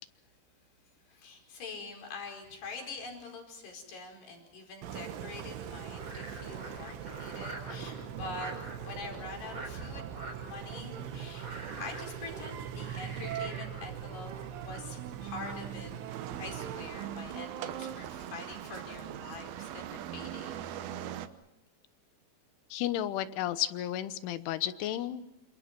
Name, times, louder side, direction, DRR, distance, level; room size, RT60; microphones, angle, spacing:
voice 1, 1.1-10.1 10.4-11.5 11.8-20.7, left 3 dB, 60° left, 2 dB, 6.9 m, -45 dB
Engine, 4.8-19.8, right 9 dB, 85° right, 4.0 m, -42 dB
Frog, 5.6-15.9, right 2 dB, 25° right, 5.6 m, -46 dB
sound 1, 16.1-21.3, right 10 dB, 70° right, 2.4 m, -41 dB
voice 2, 22.7-25.2, left 12 dB, 90° left, 12 dB, 3.6 m, -32 dB
28.5 x 27.0 x 6.0 m, 0.85 s
omnidirectional pair, 5.4 m